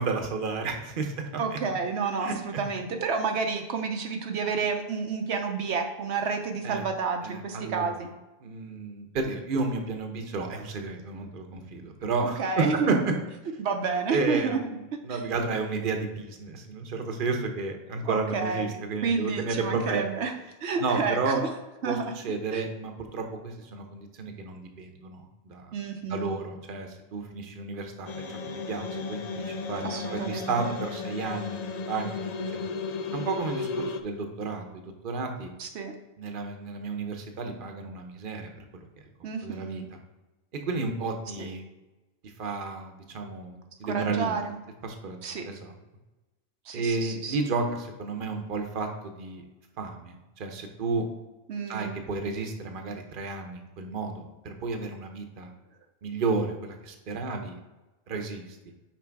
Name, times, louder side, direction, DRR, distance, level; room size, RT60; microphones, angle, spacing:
voice 1, 0.0-1.6 2.2-2.3 6.6-6.8 7.2-7.9 8.4-13.0 14.1-14.6 15.0-20.0 20.8-21.4 21.9-22.0 22.2-25.6 26.1-28.1 28.7-31.6 31.9-32.2 32.5-32.6 33.1-34.7 35.0-35.5 36.2-38.4 39.4-39.8 40.5-41.7 42.4-44.4 44.8-45.2 45.5-45.7 46.7-49.4 49.8-51.0 51.7-55.5 56.0-57.6 58.1-58.4, right 4 dB, 55° right, 4 dB, 1.0 m, -32 dB
voice 2, 1.4-8.1 12.2-13.0 13.6-14.7 15.1-15.2 18.0-18.7 19.0-20.3 20.6-21.5 21.8-22.2 22.5-22.6 25.7-26.4 29.8-30.8 35.6-35.9 39.2-39.9 41.4-41.5 43.8-44.6 45.2-45.5 46.6-47.4 51.5-52.0, right 5 dB, 85° right, 4 dB, 1.0 m, -30 dB
sound 1, 28.1-34.0, left 4 dB, 55° left, 0.5 m, -34 dB
6.0 x 4.4 x 4.6 m, 1.1 s
omnidirectional pair, 1.1 m